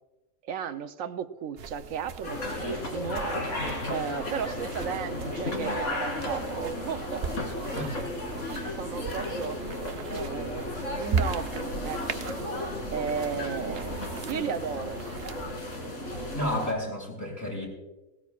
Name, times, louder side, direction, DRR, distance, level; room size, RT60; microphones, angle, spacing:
voice 1, 0.4-3.6 3.9-7.3 8.4-9.6 9.9-12.2 12.6-15.0, right 7 dB, 75° right, 10 dB, 1.1 m, -35 dB
sound 1, 1.6-15.5, right 5 dB, 55° right, 0.8 m, -38 dB
sound 2, 2.2-16.7, left 1 dB, 65° left, 2.8 m, -34 dB
voice 2, 16.3-17.7, left 1 dB, 10° left, -3 dB, 6.2 m, -31 dB
21.0 x 18.0 x 2.4 m, 1.1 s
omnidirectional pair, 1.4 m